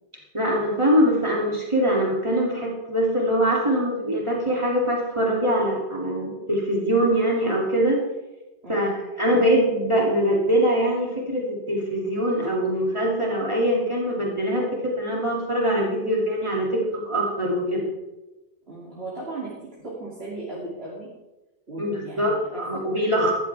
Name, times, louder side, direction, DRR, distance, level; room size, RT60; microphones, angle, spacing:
voice 1, 0.3-8.0 8.7-17.9 21.8-23.3, equal, 30° right, -3 dB, 2.8 m, -23 dB
voice 2, 8.6-9.0 18.7-19.6 19.8-21.1 21.7-22.6, right 2 dB, 80° right, -7 dB, 3.1 m, -36 dB
14.5 x 14.0 x 3.5 m, 1.0 s
omnidirectional pair, 1.0 m